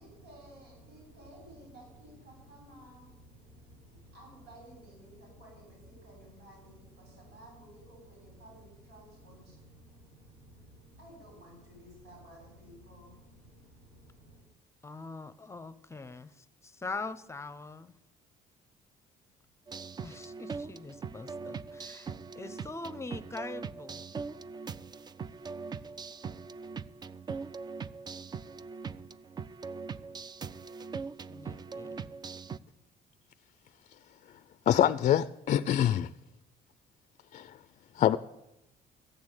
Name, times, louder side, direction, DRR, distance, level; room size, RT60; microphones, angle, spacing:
voice 1, 0.0-14.4, right 1 dB, 85° right, 6.2 m, -53 dB
voice 2, 14.8-17.9 20.0-24.0 31.3-32.1, left 3 dB, 15° left, 0.7 m, -43 dB
sound 1, 19.7-32.6, right 5 dB, 25° right, 0.4 m, -41 dB
voice 3, 34.7-36.1 37.3-37.6 38.0-38.2, left 10 dB, 45° left, 0.4 m, -25 dB
14.5 x 6.3 x 8.9 m
cardioid pair, 110°, 17 cm